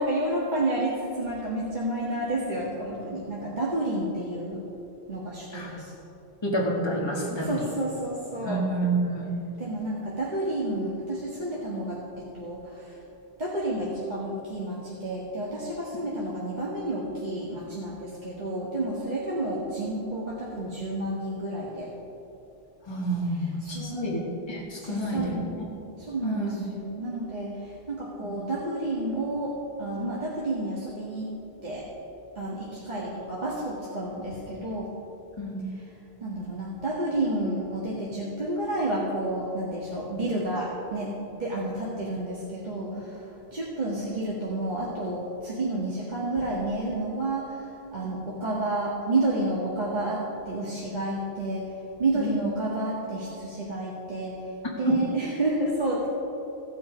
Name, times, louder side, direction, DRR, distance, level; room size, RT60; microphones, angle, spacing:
voice 1, 0.0-4.6 5.1-5.9 7.4-8.6 9.6-13.0 13.4-21.9 23.6-24.1 24.8-25.5 26.1-31.3 31.6-31.9 32.4-34.9 36.2-43.2 43.5-51.7 52.0-54.4 54.8-56.1, right 1 dB, 45° right, -7 dB, 1.8 m, -30 dB
voice 2, 6.4-7.7 8.4-9.3 22.9-25.6 26.2-26.6 28.2-28.4 35.4-35.7 52.1-52.5 54.9-55.0, right 1 dB, 25° left, -4 dB, 1.8 m, -29 dB
16.0 x 8.4 x 5.1 m, 2.9 s
omnidirectional pair, 1.1 m